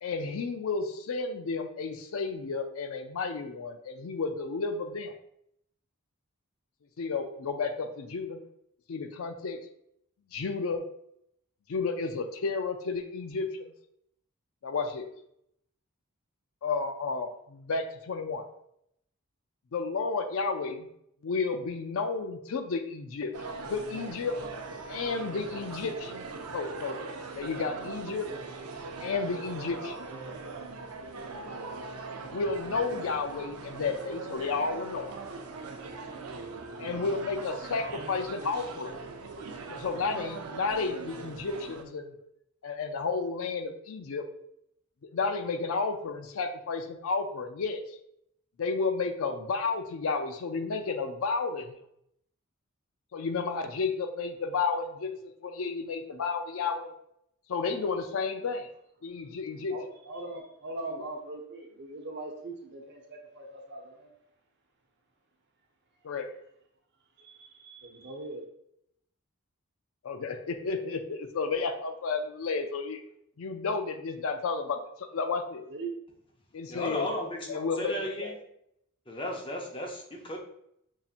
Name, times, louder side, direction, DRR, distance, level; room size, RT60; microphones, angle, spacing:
voice 1, 0.0-5.1 7.0-8.4 8.9-9.6 10.3-10.8 11.7-13.7 14.6-15.1 16.6-18.5 19.7-20.9 21.2-23.3 23.7-24.4 24.9-26.2 26.5-27.0 27.3-28.3 29.0-30.0 32.3-35.1 36.8-38.9 39.7-42.1 42.6-44.3 45.1-48.0 48.6-51.8 53.1-55.2 55.4-56.9 57.5-58.7 59.0-59.8 66.0-66.3 70.0-73.0 73.4-75.6 76.5-77.1 77.5-77.9 78.2-78.3, left 4 dB, 65° left, 0.4 m, -32 dB
sound 1, 23.3-41.8, right 4 dB, 85° right, 0.5 m, -40 dB
voice 2, 59.7-64.1 67.2-68.5 75.7-75.9, right 2 dB, 50° right, 0.8 m, -41 dB
voice 3, 76.7-78.3 79.1-80.4, left 1 dB, 20° left, 0.6 m, -35 dB
5.5 x 2.7 x 2.4 m
head